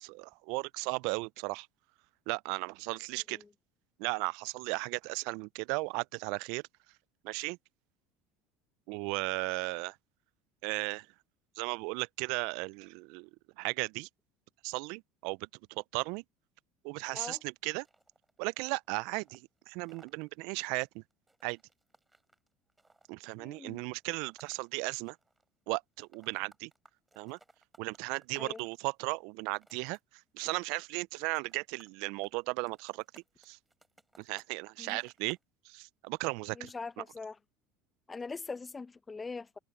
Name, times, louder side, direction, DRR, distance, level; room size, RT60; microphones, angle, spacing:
voice 1, 0.0-1.7 2.3-3.4 4.0-6.6 7.2-7.6 8.9-9.9 10.6-11.1 11.6-13.3 13.6-14.1 14.6-16.2 16.8-17.9 18.4-19.4 19.7-21.0 21.4-21.6 23.1-25.2 25.7-26.7 27.2-27.4 27.8-30.0 30.3-33.6 34.2-35.4 35.7-36.7, right 28 dB, 70° right, 0.5 m, -36 dB
sound 1, 17.7-25.5 25.7-28.8 29.3-30.0 30.3-31.0 31.3-32.0 32.2-34.6 34.8-35.4, right 2 dB, 10° right, 6.0 m, -63 dB
voice 2, 23.4-23.8 28.3-28.6 34.8-35.0 36.5-37.4 38.1-39.6, left 4 dB, 20° left, 1.0 m, -42 dB
hypercardioid pair, 75°, 0 cm